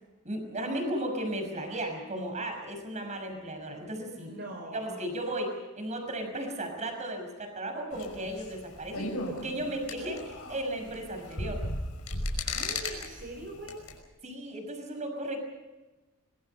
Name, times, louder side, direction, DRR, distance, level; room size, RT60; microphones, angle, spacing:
voice 1, 0.2-4.3 4.7-9.1 9.4-11.6 14.2-15.4, right 1 dB, 35° right, 5 dB, 6.2 m, -35 dB
voice 2, 4.1-5.0 12.4-13.8, right 1 dB, 55° right, 2 dB, 4.3 m, -42 dB
sound 1, 7.9-14.0, left 2 dB, 75° left, 5.8 m, -36 dB
25.5 x 23.5 x 5.7 m, 1.1 s
head